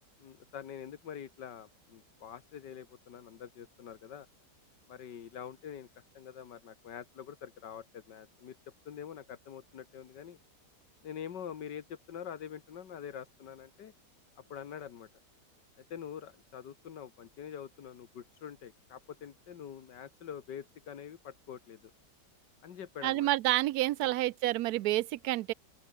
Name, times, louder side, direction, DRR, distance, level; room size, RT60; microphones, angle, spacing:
voice 1, 0.2-4.3 4.9-5.9 6.1-8.6 8.9-10.4 11.0-13.9 14.4-15.1 15.9-21.8 22.6-23.3 24.0-24.1, left 8 dB, 80° left, 2.0 m, -45 dB
voice 2, 23.0-25.5, right 16 dB, 70° right, 1.0 m, -29 dB
open air
omnidirectional pair, 1.8 m